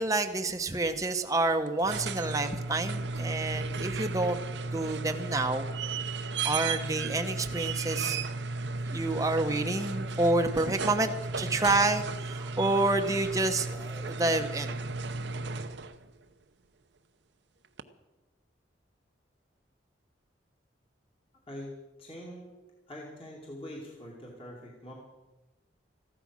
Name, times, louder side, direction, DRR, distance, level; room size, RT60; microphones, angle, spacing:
voice 1, 0.0-4.4 4.7-5.7 6.4-8.2 8.8-14.8, right 2 dB, 20° right, 5 dB, 0.9 m, -28 dB
sound 1, 1.7-16.0 17.8-17.9, right 3 dB, 70° right, 0.7 m, -34 dB
voice 2, 22.0-22.5 22.9-24.9, left 1 dB, 30° left, -2 dB, 2.6 m, -43 dB
15.0 x 12.5 x 6.2 m, 1.1 s
head